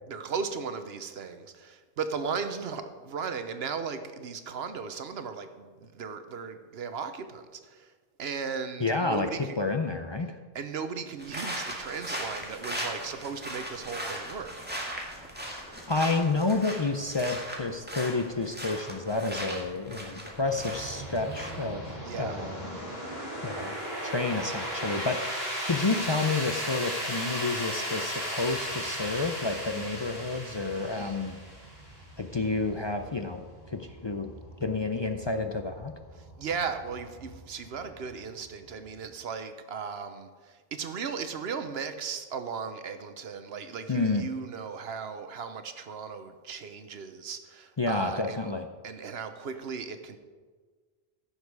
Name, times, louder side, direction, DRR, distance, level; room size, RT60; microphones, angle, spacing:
voice 1, 0.1-7.9 8.2-9.6 10.5-14.5 22.0-22.4 30.7-31.3 36.2-48.5 48.8-50.2, right 5 dB, 80° right, 9 dB, 1.1 m, -36 dB
voice 2, 8.8-9.3 9.6-10.4 15.9-22.7 23.4-23.7 24.0-31.4 32.2-34.3 34.6-35.9 43.9-44.3 47.8-48.7, left 3 dB, 35° left, 6 dB, 0.5 m, -30 dB
sound 1, 11.2-21.8, equal, 10° right, 1.8 m, -38 dB
sound 2, 20.4-39.0, equal, 70° left, 2.9 m, -37 dB
15.5 x 6.6 x 4.7 m, 1.5 s
omnidirectional pair, 1.0 m